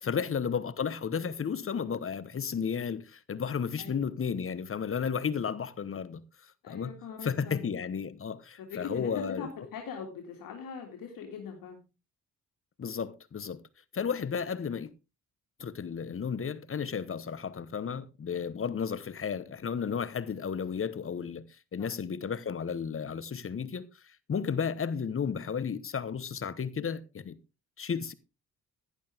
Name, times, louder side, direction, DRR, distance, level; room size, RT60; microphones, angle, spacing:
voice 1, 0.0-6.2 6.7-6.9 7.2-9.5 12.8-13.6 13.9-14.9 15.6-21.4 21.7-27.4 27.8-28.1, left 6 dB, 40° left, 1.0 m, -33 dB
voice 2, 6.6-7.6 8.7-11.8 21.8-21.9, left 6 dB, 75° left, 2.4 m, -41 dB
11.5 x 11.0 x 3.5 m
supercardioid pair, 70°, 34 cm